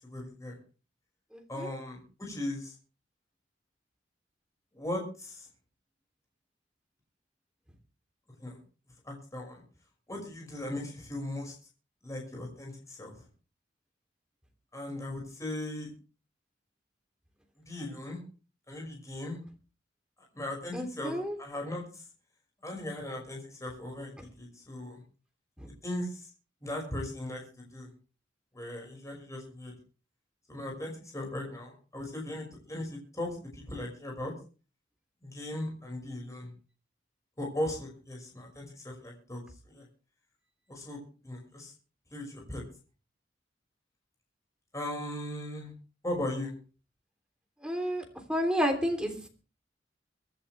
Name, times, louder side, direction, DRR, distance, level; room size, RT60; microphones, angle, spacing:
voice 1, 0.0-0.6 1.5-2.7 4.7-5.5 8.4-8.6 9.0-9.6 10.1-11.5 12.0-13.2 14.7-15.9 17.7-18.2 18.7-19.4 20.3-21.1 21.4-22.0 22.6-25.0 25.8-26.3 26.6-27.9 28.5-29.7 30.5-34.3 35.2-36.5 37.4-39.9 40.7-41.7 42.1-42.6 44.7-45.7 46.0-46.5, left 1 dB, 20° left, -1 dB, 5.8 m, -38 dB
voice 2, 1.3-1.7 20.7-21.3 25.6-25.7 47.6-48.0 48.3-49.3, equal, 5° right, 4 dB, 3.3 m, -30 dB
24.0 x 11.0 x 3.4 m, 0.36 s
head